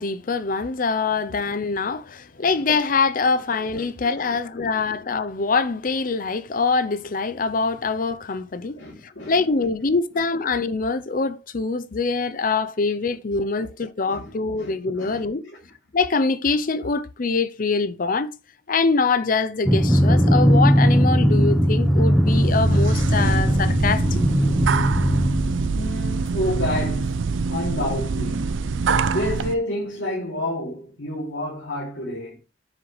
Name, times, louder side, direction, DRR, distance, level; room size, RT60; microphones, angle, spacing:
voice 1, 0.0-8.8 9.0-15.5 15.9-18.3 18.7-24.3, left 4 dB, 45° left, 0.5 m, -24 dB
voice 2, 4.2-4.8 8.7-9.7 13.6-13.7 14.1-14.3 14.6-14.7 15.0-15.6 25.7-27.2 27.5-28.5 28.8-32.4, left 1 dB, 80° left, 2.8 m, -30 dB
Drum, 19.7-26.1, equal, ahead, 0.9 m, -19 dB
sound 1, 22.2-29.5, right 4 dB, 80° right, 0.5 m, -25 dB
7.4 x 6.2 x 3.2 m
head